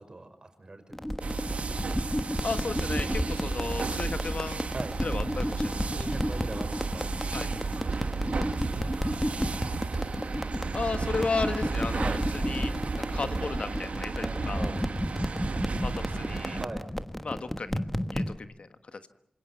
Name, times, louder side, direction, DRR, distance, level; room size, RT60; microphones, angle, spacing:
voice 1, 0.0-1.6 4.7-5.0 5.8-7.1 7.7-10.0 12.0-12.2 14.2-14.8 16.6-16.8, right 2 dB, 35° right, 7 dB, 5.5 m, -43 dB
sound 1, 0.9-18.4, equal, 10° left, 1.3 m, -32 dB
sound 2, 1.2-16.7, right 4 dB, 65° right, 1.4 m, -33 dB
voice 2, 2.4-4.7 5.0-5.8 7.3-7.5 10.7-14.7 15.8-16.6 17.2-17.8 18.1-19.1, left 4 dB, 55° left, 9 dB, 1.4 m, -34 dB
27.0 x 27.0 x 5.8 m, 0.71 s
wide cardioid pair, 105°, 2 cm